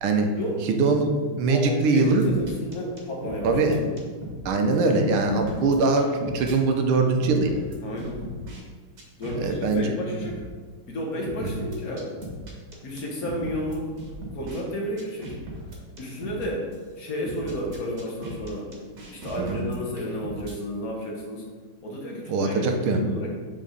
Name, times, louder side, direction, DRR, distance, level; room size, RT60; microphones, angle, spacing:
voice 1, 0.7-2.2 3.4-3.8 4.4-7.5 9.4-9.9 19.4-19.6 22.3-23.0, right 3 dB, 75° right, 4 dB, 1.6 m, -22 dB
voice 2, 1.5-3.6 7.8-8.2 9.2-10.4 10.9-12.1 12.8-13.9 14.3-15.3 16.0-16.7 17.0-18.7 19.1-21.5 21.8-23.3, equal, 45° left, -2 dB, 1.5 m, -32 dB
sound 1, 2.0-4.4 4.7-4.8 5.2-6.6 7.2-8.6 9.0-9.8 10.2-10.4 11.2-14.6 15.0-16.4 16.7-16.8 17.2-20.6, right 1 dB, 50° right, 1.8 m, -38 dB
7.4 x 4.7 x 4.0 m, 1.5 s
omnidirectional pair, 2.4 m